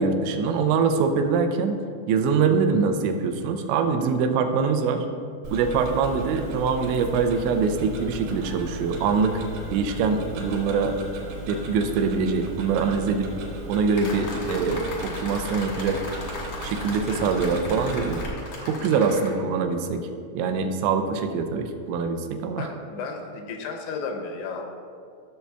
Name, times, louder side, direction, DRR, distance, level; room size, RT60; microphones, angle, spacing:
voice 1, 0.0-1.8 2.1-5.1 5.5-9.4 9.7-11.0 11.5-13.3 13.7-16.0 16.6-18.2 18.6-20.0 20.4-22.7, right 5 dB, 85° right, 6 dB, 2.9 m, -24 dB
Tick-tock, 5.4-18.3, right 2 dB, 70° right, 3.1 m, -36 dB
sound 1, 13.9-19.3, left 2 dB, 70° left, 1.4 m, -37 dB
voice 2, 22.6-24.7, left 4 dB, 85° left, 3 dB, 3.1 m, -33 dB
15.0 x 6.6 x 2.3 m, 2.3 s
omnidirectional pair, 5.1 m